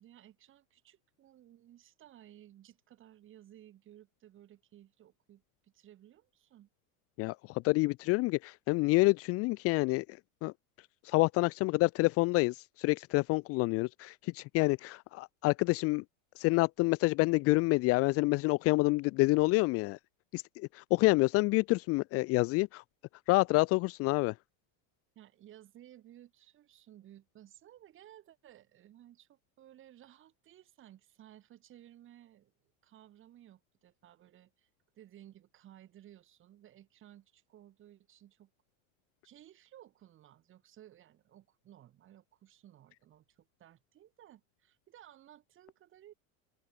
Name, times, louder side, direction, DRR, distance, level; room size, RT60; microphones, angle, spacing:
voice 1, 0.0-6.7 25.2-32.5 32.8-34.7 35.0-38.5 39.2-46.1, right 12 dB, 30° right, 7.6 m, -57 dB
voice 2, 7.2-10.0 10.4-10.5 11.0-16.0 16.4-20.0 20.3-22.8 23.3-24.3, left 23 dB, 35° left, 0.7 m, -28 dB
open air
supercardioid pair, 170°, 42 cm